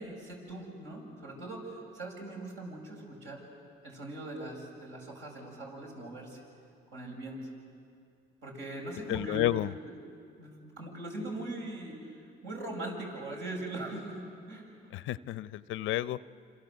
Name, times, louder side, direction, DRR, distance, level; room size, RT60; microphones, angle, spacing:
voice 1, 0.0-3.5 3.8-6.4 6.9-7.5 8.4-9.5 9.8-9.9 10.4-14.7, right 2 dB, 75° right, -1 dB, 7.7 m, -41 dB
voice 2, 9.1-9.7 14.9-16.2, left 14 dB, 90° left, 17 dB, 0.6 m, -31 dB
28.0 x 27.0 x 8.0 m, 2.4 s
cardioid pair, 90°, 20 cm